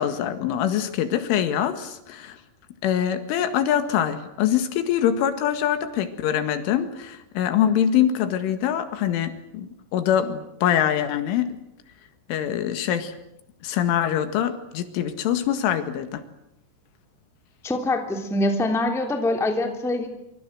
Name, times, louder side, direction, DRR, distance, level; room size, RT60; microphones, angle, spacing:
voice 1, 0.0-2.4 2.8-11.6 12.3-13.1 13.6-16.2, left 10 dB, 85° left, 9 dB, 4.3 m, -24 dB
voice 2, 17.6-20.1, left 2 dB, ahead, 4 dB, 2.0 m, -24 dB
26.0 x 25.0 x 7.7 m, 0.81 s
omnidirectional pair, 5.6 m